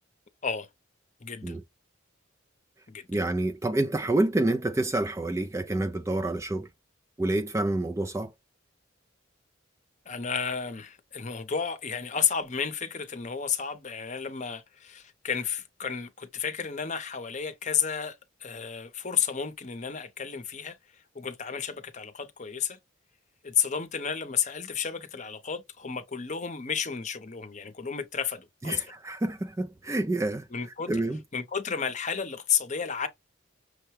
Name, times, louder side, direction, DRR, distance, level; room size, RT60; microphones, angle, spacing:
voice 1, 1.2-1.5 2.9-3.1 10.1-22.8 23.4-28.9 30.5-30.9 31.3-33.1, left 7 dB, 35° left, 0.7 m, -32 dB
voice 2, 3.1-6.7 7.2-8.3 28.6-30.5 30.9-31.2, right 2 dB, 15° right, 0.3 m, -28 dB
6.4 x 2.2 x 3.1 m
head